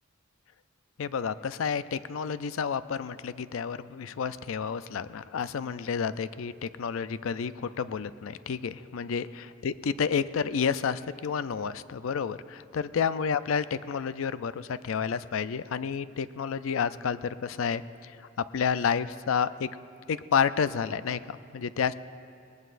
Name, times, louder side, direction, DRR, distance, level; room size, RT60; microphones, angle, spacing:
voice 1, 1.0-18.1 18.4-19.7 20.1-21.9, left 6 dB, 75° left, 14 dB, 0.4 m, -30 dB
21.0 x 19.0 x 2.5 m, 2.7 s
head